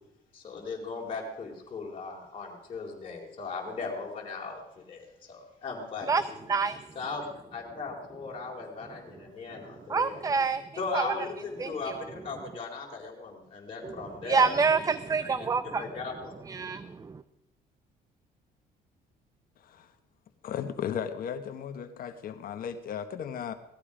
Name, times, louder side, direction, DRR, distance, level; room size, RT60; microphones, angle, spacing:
voice 1, 0.3-6.4 6.9-10.2 10.8-14.5 15.8-16.4, left 4 dB, 35° left, -3 dB, 4.0 m, -38 dB
voice 2, 9.9-10.6 10.9-11.1 11.6-12.0 13.8-15.8 16.5-17.2, right 5 dB, 20° right, 13 dB, 0.6 m, -27 dB
voice 3, 20.4-23.5, left 8 dB, 60° left, 9 dB, 1.2 m, -35 dB
18.5 x 13.5 x 5.0 m, 0.87 s
cardioid pair, 110°, 17 cm